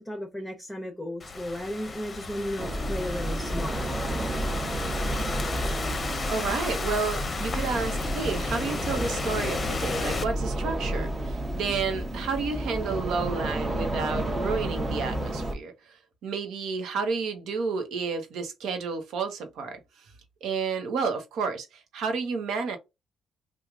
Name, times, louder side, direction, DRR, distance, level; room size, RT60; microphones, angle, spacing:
voice 1, 0.0-3.9, left 1 dB, 5° left, 1.0 m, -34 dB
Thunderstorm / Rain, 1.2-10.2, left 4 dB, 35° left, 0.7 m, -33 dB
sound 1, 2.6-15.5, right 1 dB, 25° right, 1.0 m, -31 dB
voice 2, 6.3-19.8 20.4-22.8, right 4 dB, 80° right, 1.0 m, -31 dB
3.0 x 2.4 x 3.7 m
cardioid pair, 90°, 0 cm